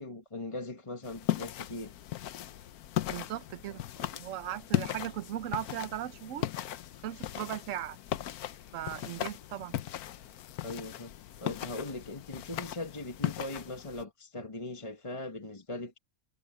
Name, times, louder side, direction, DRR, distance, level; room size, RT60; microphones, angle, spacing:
voice 1, 0.0-1.9 10.6-11.1 11.4-16.0, left 2 dB, 20° left, 1.5 m, -40 dB
sound 1, 1.0-14.0, left 13 dB, 85° left, 1.2 m, -37 dB
voice 2, 3.1-6.5 7.0-8.0 8.7-9.8, right 12 dB, 65° right, 1.0 m, -38 dB
omnidirectional pair, 1.5 m